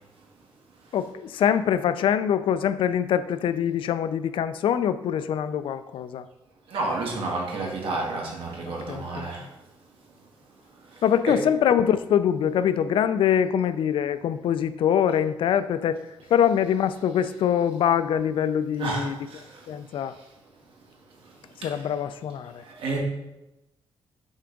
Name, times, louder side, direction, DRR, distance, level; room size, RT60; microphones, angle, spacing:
voice 1, 0.9-6.2 8.6-9.5 11.0-16.0 16.3-19.2 19.7-20.1 21.6-22.6, left 9 dB, 75° left, 13 dB, 0.4 m, -24 dB
voice 2, 6.7-9.5 10.9-11.4 18.8-19.7 21.2-21.3 21.6-21.8 22.6-23.0, right 2 dB, 90° right, -1 dB, 1.6 m, -31 dB
6.3 x 3.4 x 5.1 m, 0.97 s
wide cardioid pair, 180°, 9 cm